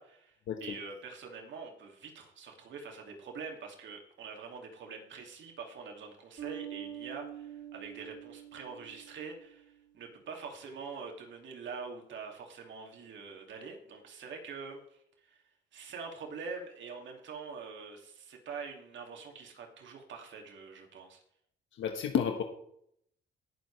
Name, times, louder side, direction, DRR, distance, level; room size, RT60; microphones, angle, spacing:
voice 1, 0.0-15.4 15.7-21.2, right 5 dB, 70° right, 2 dB, 2.5 m, -45 dB
Bass guitar, 6.4-9.9, right 10 dB, 55° right, 5.6 m, -45 dB
voice 2, 21.7-22.4, left 8 dB, 75° left, 4 dB, 1.3 m, -31 dB
18.5 x 7.2 x 3.4 m, 0.70 s
cardioid pair, 90°, 20 cm